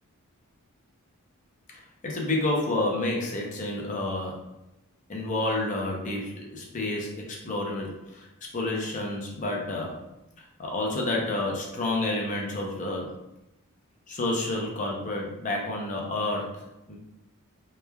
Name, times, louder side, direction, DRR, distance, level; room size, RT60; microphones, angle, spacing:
voice 1, 2.0-4.5 5.1-10.0 10.4-13.1 14.1-16.6 16.9-17.0, left 2 dB, 35° left, -1 dB, 0.5 m, -30 dB
3.1 x 2.1 x 2.2 m, 0.91 s
head